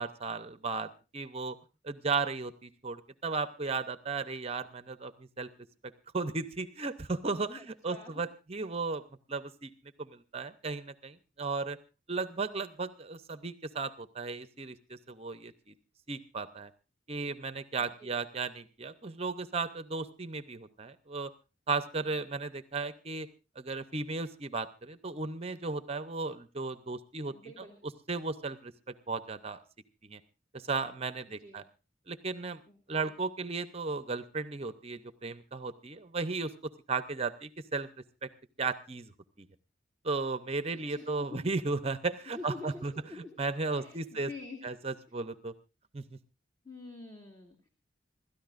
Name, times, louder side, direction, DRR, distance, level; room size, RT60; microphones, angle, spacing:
voice 1, 0.0-1.6 1.8-5.1 5.4-5.5 6.1-9.0 9.3-9.7 10.0-11.8 12.1-15.7 16.1-16.7 17.1-21.3 21.7-23.3 23.6-27.3 28.1-29.6 30.0-30.2 30.5-31.6 32.1-32.6 32.9-36.5 36.9-37.9 38.2-38.3 38.6-39.1 39.4-39.5 40.0-44.3 44.6-45.5 45.9-46.2, right 4 dB, 30° right, 13 dB, 0.7 m, -35 dB
voice 2, 7.5-8.2 17.8-18.1 27.3-27.8 31.2-31.6 32.7-33.1 40.7-41.4 42.3-43.4 43.7-44.8 45.1-45.2 46.6-47.7, left 3 dB, 20° left, 2 dB, 1.9 m, -47 dB
26.5 x 13.0 x 2.5 m, 0.31 s
head